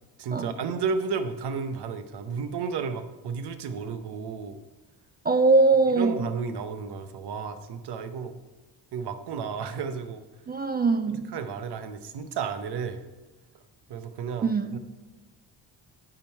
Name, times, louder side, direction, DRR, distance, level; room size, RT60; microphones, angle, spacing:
voice 1, 0.2-4.6 5.9-8.3 8.9-10.2 11.1-13.0 13.9-14.8, right 5 dB, 70° right, 9 dB, 0.9 m, -32 dB
voice 2, 5.3-6.3 10.5-11.2 14.4-14.8, right 3 dB, 25° right, 9 dB, 0.4 m, -22 dB
9.7 x 3.9 x 5.4 m, 1.1 s
cardioid pair, 90°, 41 cm